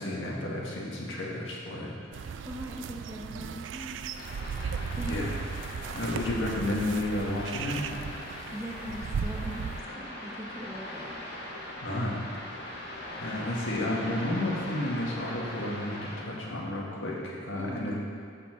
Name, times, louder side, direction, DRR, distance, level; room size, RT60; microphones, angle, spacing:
voice 1, 0.0-2.4 5.1-5.3 5.9-8.2 11.8-12.2 12.5-12.7 13.2-18.0, left 1 dB, 85° left, -3 dB, 1.6 m, -32 dB
sound 1, 2.1-9.8, right 6 dB, 75° right, 0.3 m, -36 dB
voice 2, 2.2-4.0 5.0-5.3 8.5-11.1 17.6-18.0, equal, 15° right, -3 dB, 1.0 m, -40 dB
sound 2, 4.1-16.2, left 1 dB, 55° left, 1.4 m, -41 dB
12.5 x 4.3 x 4.4 m, 2.4 s
head